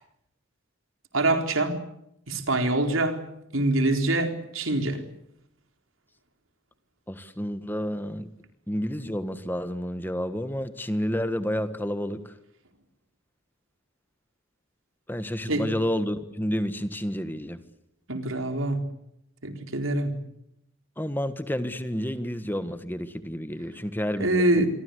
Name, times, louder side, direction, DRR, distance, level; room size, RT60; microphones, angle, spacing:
voice 1, 1.1-1.8 2.3-3.2 3.5-5.0 15.5-15.6 18.1-18.8 19.4-20.1 24.2-24.7, right 2 dB, 85° right, 6 dB, 4.3 m, -24 dB
voice 2, 7.1-8.3 8.7-12.3 15.1-17.6 21.0-24.6, equal, 10° left, 11 dB, 1.5 m, -30 dB
27.5 x 23.5 x 8.3 m, 0.78 s
head